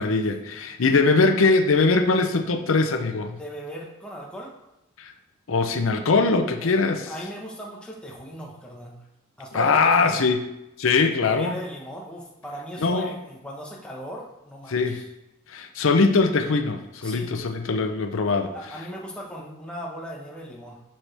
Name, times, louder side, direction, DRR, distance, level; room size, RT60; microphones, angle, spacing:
voice 1, 0.0-3.4 5.0-5.1 5.5-7.0 9.5-10.4 10.8-11.6 12.8-13.1 14.7-15.0 15.5-18.5, left 4 dB, 85° left, 6 dB, 0.7 m, -21 dB
voice 2, 3.3-4.6 6.6-9.0 9.4-10.2 11.2-15.1 17.0-17.4 18.5-20.8, equal, 5° left, -3 dB, 1.1 m, -38 dB
11.5 x 4.3 x 3.4 m, 0.90 s
head